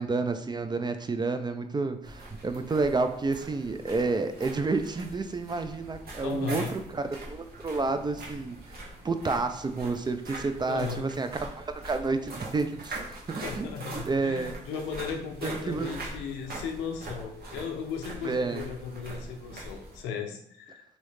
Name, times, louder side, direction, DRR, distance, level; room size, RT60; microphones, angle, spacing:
voice 1, 0.0-8.6 9.0-14.6 15.4-15.9 18.2-18.7, right 3 dB, 25° right, 8 dB, 0.4 m, -30 dB
sound 1, 2.0-20.0, right 2 dB, 55° right, 1.1 m, -43 dB
voice 2, 6.2-6.7 10.7-11.1 13.4-20.8, left 6 dB, 90° left, 4 dB, 0.5 m, -36 dB
3.0 x 2.7 x 3.2 m, 0.70 s
supercardioid pair, 50°, 19 cm